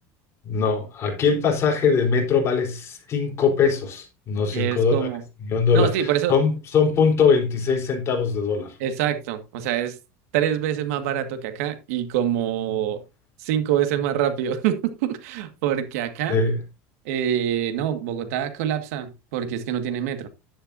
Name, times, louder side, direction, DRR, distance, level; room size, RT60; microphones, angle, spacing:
voice 1, 0.4-5.1 5.5-8.8 16.3-16.6, left 5 dB, 35° left, 3.9 m, -21 dB
voice 2, 4.5-5.2 5.7-6.4 8.8-10.0 10.3-13.0 13.4-16.4 17.1-20.3, right 10 dB, 80° right, 1.8 m, -25 dB
11.0 x 10.5 x 2.7 m
supercardioid pair, 135°, 8 cm